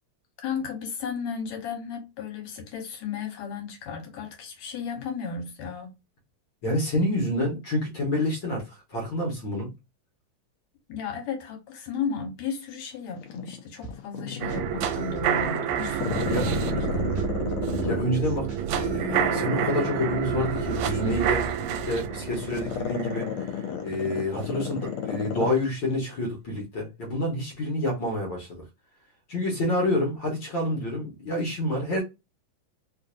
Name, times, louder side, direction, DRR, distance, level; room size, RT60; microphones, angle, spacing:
voice 1, 0.4-5.9 10.9-17.2, left 5 dB, 70° left, 2.3 m, -34 dB
voice 2, 6.6-9.7 16.3-16.4 17.8-23.3 23.8-28.6 29.3-32.0, left 1 dB, 55° left, 1.6 m, -28 dB
Growling, 13.2-14.9 15.3-18.3 18.8-25.6 25.9-26.0, left 9 dB, 90° left, 1.1 m, -32 dB
sound 1, 13.8-14.2 14.5-16.8 17.1-18.9, right 3 dB, 30° right, 1.3 m, -40 dB
sound 2, 14.4-24.4 24.8-24.9, right 9 dB, 85° right, 1.9 m, -29 dB
4.6 x 2.6 x 2.5 m
omnidirectional pair, 3.3 m